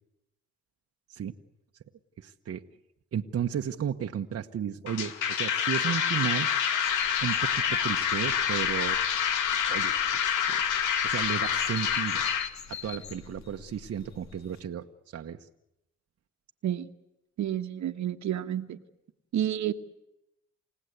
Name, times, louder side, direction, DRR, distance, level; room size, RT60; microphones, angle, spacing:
voice 1, 2.2-2.6 3.1-6.5 7.2-9.0 9.7-9.9 10.2-10.6 11.0-12.3 12.7-14.9 15.1-15.4, right 8 dB, 50° right, 4 dB, 1.2 m, -33 dB
sound 1, 4.9-12.5, left 8 dB, 85° left, 2.0 m, -27 dB
sound 2, 6.8-14.6, left 8 dB, 65° left, 1.9 m, -45 dB
voice 2, 17.4-18.8 19.3-19.7, right 11 dB, 65° right, 9 dB, 1.4 m, -30 dB
29.0 x 17.5 x 8.2 m, 0.88 s
cardioid pair, 90°, 30 cm